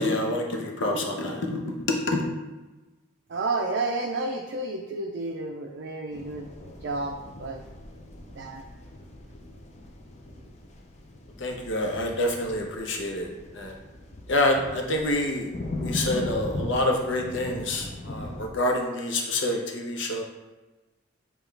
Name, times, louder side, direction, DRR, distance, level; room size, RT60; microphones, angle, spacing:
voice 1, 0.0-2.2 11.4-13.3 13.5-13.7 14.3-15.5 15.8-20.2, left 1 dB, 70° left, 1 dB, 0.7 m, -27 dB
voice 2, 3.3-6.5 6.8-7.6 8.4-8.6, right 2 dB, 60° right, 1 dB, 0.4 m, -31 dB
sound 1, 6.1-18.5, left 1 dB, 35° left, 0.4 m, -39 dB
6.8 x 2.3 x 3.2 m, 1.1 s
head